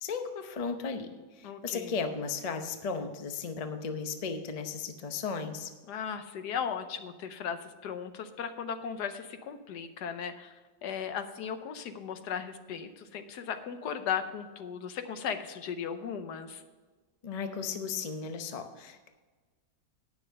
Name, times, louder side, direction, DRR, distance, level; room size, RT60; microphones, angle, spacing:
voice 1, 0.0-5.7 17.2-19.1, left 5 dB, 85° left, 7 dB, 0.3 m, -35 dB
voice 2, 1.4-1.9 5.9-16.6, left 7 dB, 65° left, 9 dB, 1.3 m, -37 dB
9.6 x 6.6 x 6.4 m, 1.3 s
omnidirectional pair, 2.1 m